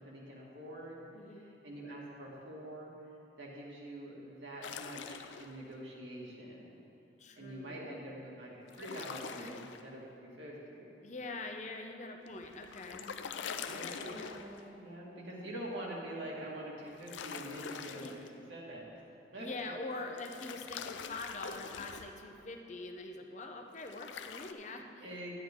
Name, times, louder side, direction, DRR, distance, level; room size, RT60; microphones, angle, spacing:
voice 1, 0.0-1.0 1.3-2.9 3.4-6.7 7.4-9.5 9.8-10.9 12.9-13.1 13.3-18.9 19.3-19.7 25.0-25.3, right 1 dB, 80° right, -4 dB, 2.1 m, -45 dB
voice 2, 1.1-1.5 7.2-7.9 9.4-9.6 11.0-14.4 15.4-15.5 18.0-18.1 19.4-25.0, left 2 dB, 40° left, 4 dB, 0.7 m, -44 dB
sound 1, 4.6-5.6 8.7-9.8 12.3-14.7 16.9-18.3 20.2-22.1 23.8-24.5, left 6 dB, 75° left, 0.4 m, -44 dB
11.0 x 9.3 x 3.7 m, 2.8 s
head